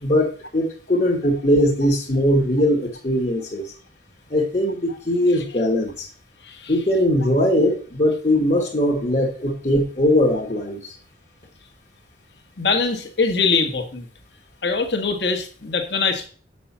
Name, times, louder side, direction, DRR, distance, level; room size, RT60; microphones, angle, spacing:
voice 1, 0.0-3.7 4.3-6.1 6.7-10.9, left 1 dB, 40° left, -1 dB, 1.5 m, -20 dB
voice 2, 12.6-14.1 14.6-16.3, left 4 dB, 60° left, 4 dB, 1.6 m, -23 dB
7.0 x 6.1 x 7.2 m, 0.41 s
head